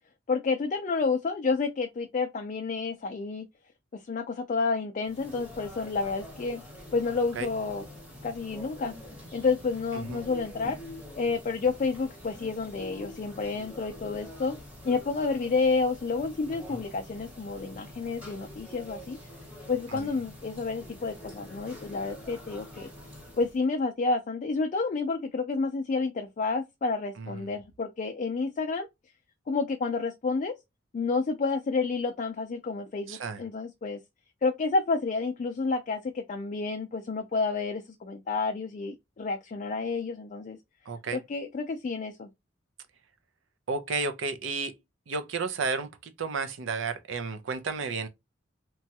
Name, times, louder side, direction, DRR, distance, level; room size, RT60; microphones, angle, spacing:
voice 1, 0.3-3.5 4.0-6.6 6.9-7.9 8.2-8.9 9.3-10.8 11.1-14.6 14.8-19.2 19.7-22.9 23.4-28.9 29.5-30.5 30.9-34.0 34.4-40.6 41.1-42.3, left 4 dB, 40° left, 0.3 m, -30 dB
sound 1, 5.0-23.6, left 1 dB, 5° right, 0.9 m, -46 dB
voice 2, 33.1-33.4 40.9-41.2 43.7-44.7 45.1-48.1, right 4 dB, 90° right, 0.5 m, -32 dB
2.9 x 2.3 x 2.7 m
head